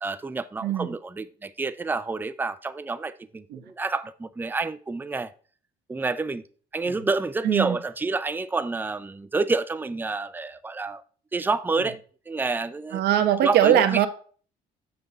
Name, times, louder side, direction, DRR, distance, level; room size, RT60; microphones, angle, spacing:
voice 1, 0.0-5.3 5.9-6.4 6.7-11.0 11.3-12.0 12.3-13.0 13.4-14.1, right 3 dB, 10° right, 0.5 m, -28 dB
voice 2, 0.6-1.0 3.5-3.6 6.8-6.9 7.4-7.8 12.9-14.1, right 11 dB, 75° right, 1.0 m, -21 dB
6.8 x 5.7 x 3.9 m
cardioid pair, 110°, 17 cm